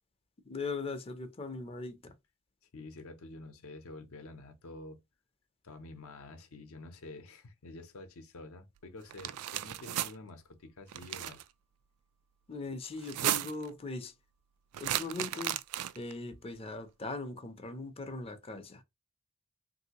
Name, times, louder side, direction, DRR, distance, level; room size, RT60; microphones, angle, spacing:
voice 1, 0.4-2.2 12.5-14.1 14.8-15.6 15.9-18.8, left 3 dB, 25° left, 0.5 m, -40 dB
voice 2, 2.7-5.0 5.6-11.4, left 2 dB, 65° left, 0.6 m, -48 dB
sound 1, 9.1-10.1 10.9-11.4 13.0-13.7 14.7-16.1, right 13 dB, 80° right, 0.3 m, -34 dB
3.2 x 2.6 x 2.8 m
head